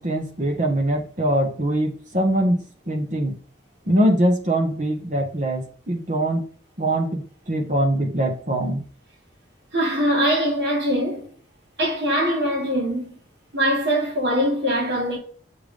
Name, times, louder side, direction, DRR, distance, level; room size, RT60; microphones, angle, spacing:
voice 1, 0.0-2.6 2.9-3.4 3.9-6.4 6.8-8.8, right 1 dB, 45° right, 1.4 m, -22 dB
voice 2, 9.7-11.3 11.8-13.2 13.5-15.2, equal, 70° right, 2.4 m, -22 dB
7.1 x 3.5 x 5.2 m
head